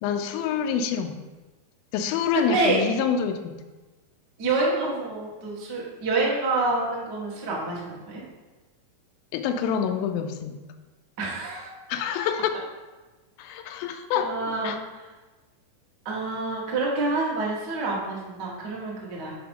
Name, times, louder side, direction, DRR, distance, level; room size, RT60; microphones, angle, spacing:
voice 1, 0.0-1.2 1.9-3.6 9.3-10.6 11.9-12.5 13.4-14.3 14.6-14.8, left 7 dB, 80° left, 7 dB, 2.3 m, -27 dB
voice 2, 2.3-2.8 4.4-8.2 11.2-11.7 14.1-14.8 16.0-19.3, right 3 dB, 55° right, -4 dB, 1.2 m, -27 dB
5.7 x 4.9 x 5.3 m, 1.2 s
omnidirectional pair, 4.3 m